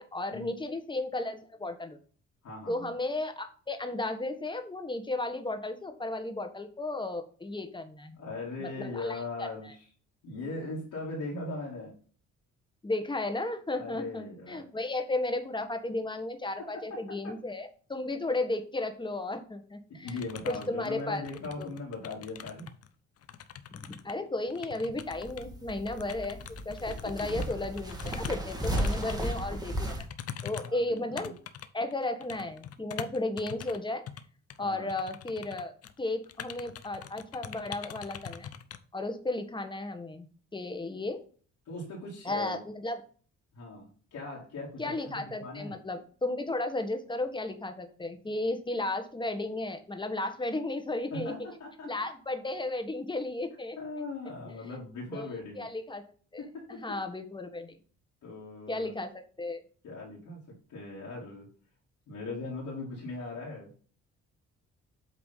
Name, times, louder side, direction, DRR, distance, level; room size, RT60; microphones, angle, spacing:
voice 1, 0.0-2.0 2.7-8.2 8.6-9.7 12.8-20.2 20.5-21.2 21.6-21.7 23.7-30.1 30.4-31.3 31.7-34.0 34.6-38.5 38.9-40.3 40.5-41.2 42.2-43.0 44.8-51.3 51.8-53.8 54.7-54.8 55.1-56.0 56.3-56.4 56.7-57.8 58.7-59.6, left 2 dB, 15° left, 7 dB, 1.2 m, -34 dB
voice 2, 2.4-2.9 8.1-9.8 10.2-11.9 13.8-14.6 16.6-17.4 19.9-22.8 27.0-27.3 30.6-31.3 34.6-34.9 41.7-42.6 43.5-45.8 51.1-52.1 53.8-55.6 56.4-57.0 58.2-58.9 59.8-61.5 62.1-63.7, left 3 dB, 75° left, -5 dB, 2.6 m, -40 dB
sound 1, 20.1-22.9 23.2-29.4 29.8-33.8 34.1-34.2 34.5-34.6 34.9-36.0 36.2-38.8, left 9 dB, 55° left, 0.7 m, -44 dB
sound 2, 24.9-30.0, right 1 dB, 15° right, 1.5 m, -35 dB
8.1 x 3.0 x 5.5 m, 0.42 s
cardioid pair, 90°, 30 cm